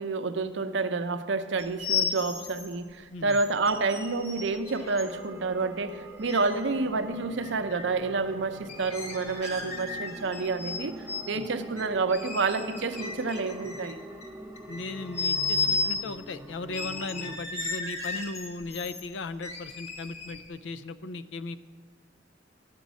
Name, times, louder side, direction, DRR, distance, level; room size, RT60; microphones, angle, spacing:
voice 1, 0.0-10.9 11.3-14.0, right 3 dB, 70° right, 9 dB, 0.6 m, -29 dB
sound 1, 1.6-2.7 3.3-5.1 6.3-6.7 7.4-7.9 8.7-10.8 11.1-11.3 11.8-14.3 14.6-16.0 16.7-19.0 19.4-20.5, left 4 dB, 35° left, 1.5 m, -34 dB
sound 2, 4.4-17.4, right 1 dB, 10° right, 0.6 m, -44 dB
voice 2, 14.7-21.6, left 3 dB, 70° left, 13 dB, 0.4 m, -37 dB
11.0 x 5.2 x 8.2 m, 1.5 s
head